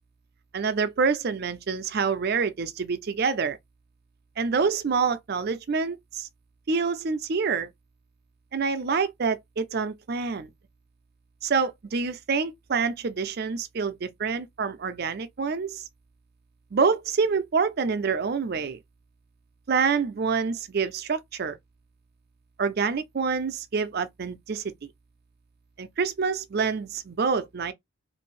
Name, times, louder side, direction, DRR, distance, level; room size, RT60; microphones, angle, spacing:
voice 1, 0.5-3.6 4.4-6.3 6.7-7.7 8.5-10.5 11.4-15.8 16.7-18.8 19.7-21.6 22.6-24.9 25.8-27.7, right 5 dB, 45° right, 0.4 m, -27 dB
2.7 x 2.5 x 3.1 m
head